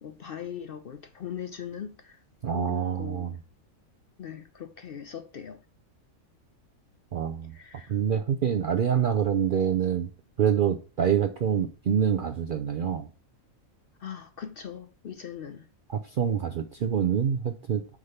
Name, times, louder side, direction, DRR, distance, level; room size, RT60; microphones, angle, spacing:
voice 1, 0.0-3.4 4.2-5.7 7.5-8.0 14.0-15.7, left 8 dB, 60° left, 0.6 m, -40 dB
voice 2, 2.4-3.4 7.1-7.5 7.9-10.1 10.4-13.1 15.9-18.0, right 8 dB, 60° right, 0.5 m, -26 dB
6.4 x 3.7 x 5.7 m
omnidirectional pair, 1.4 m